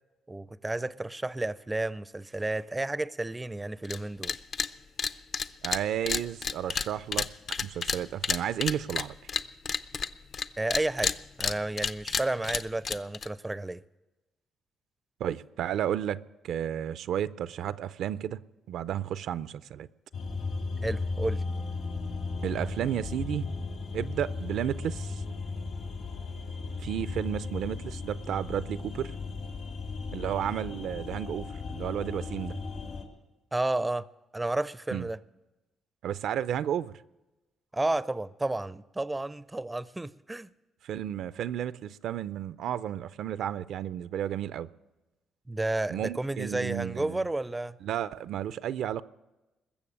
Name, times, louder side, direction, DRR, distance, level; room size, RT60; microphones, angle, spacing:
voice 1, 0.3-4.4 10.6-13.8 20.8-21.4 33.5-34.1 34.3-35.2 37.7-40.5 45.5-47.8, right 2 dB, 15° right, 0.4 m, -31 dB
sound 1, 3.8-4.0 4.2-4.7 5.0-10.5 10.7-13.3, left 5 dB, 50° left, 0.6 m, -30 dB
voice 2, 5.6-7.3 7.6-9.2 15.2-16.2 16.4-18.4 18.7-19.9 22.4-23.5 23.9-25.2 26.8-29.1 30.1-32.6 34.9-35.1 36.0-36.9 40.8-44.7 45.9-47.2 47.8-49.0, right 10 dB, 75° right, 0.4 m, -32 dB
sound 2, 20.1-33.0, left 3 dB, 70° left, 2.8 m, -36 dB
21.0 x 7.2 x 8.5 m
cardioid pair, 90°, 0 cm